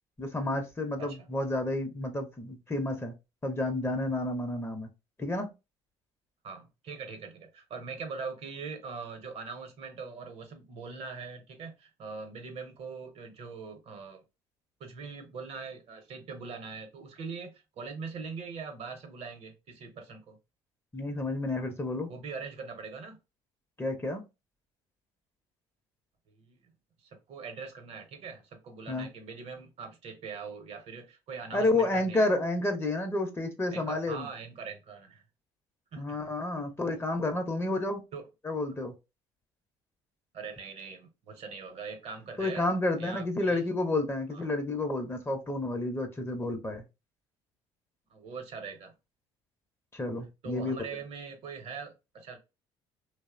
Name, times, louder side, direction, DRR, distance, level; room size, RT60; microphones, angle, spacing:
voice 1, 0.2-3.1 3.4-4.9 5.2-5.5 20.9-22.1 23.8-24.3 28.9-29.1 31.5-34.3 36.0-38.0 38.4-38.9 42.4-46.8 49.9-50.7, left 2 dB, 20° left, 0.7 m, -30 dB
voice 2, 6.4-14.2 14.8-20.4 22.1-23.2 26.3-26.6 27.0-32.3 33.7-35.2 35.9-36.3 38.1-38.3 40.3-42.7 43.0-43.6 44.3-44.5 48.1-48.9 50.4-52.4, right 5 dB, 55° right, 0.8 m, -42 dB
2.7 x 2.0 x 2.4 m
supercardioid pair, 70°, 12 cm